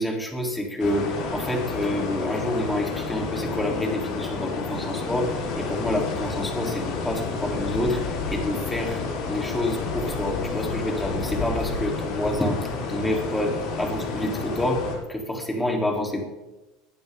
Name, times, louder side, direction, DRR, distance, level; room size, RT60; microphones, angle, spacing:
voice 1, 0.0-9.0 9.3-12.6 12.9-14.8 15.1-16.2, left 1 dB, 5° left, 1 dB, 3.5 m, -28 dB
sound 1, 0.8-15.0, left 4 dB, 60° left, 5.7 m, -30 dB
20.5 x 11.5 x 3.8 m, 1.0 s
supercardioid pair, 120°, 0 cm